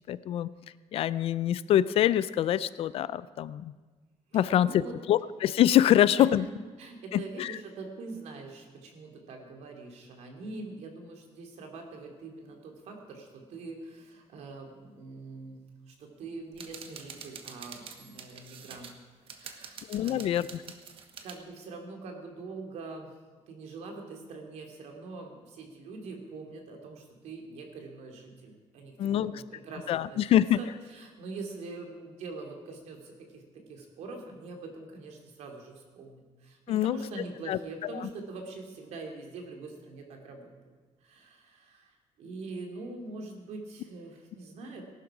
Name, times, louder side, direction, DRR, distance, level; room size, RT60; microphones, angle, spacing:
voice 1, 0.1-0.5 0.9-3.7 4.3-6.5 7.1-7.6 19.9-20.6 29.0-29.3 29.9-30.6 36.7-37.0 37.5-37.6 37.9-38.1, left 11 dB, 55° left, 17 dB, 0.4 m, -25 dB
voice 2, 4.3-5.0 6.2-6.5 6.8-18.9 19.2-20.3 21.2-23.1 23.5-40.5 41.0-44.8, right 3 dB, 70° right, 3 dB, 2.7 m, -44 dB
sound 1, 16.5-18.9 19.3-21.4, right 6 dB, 50° right, 1.2 m, -46 dB
19.0 x 11.5 x 4.9 m, 1.3 s
cardioid pair, 170°, 12 cm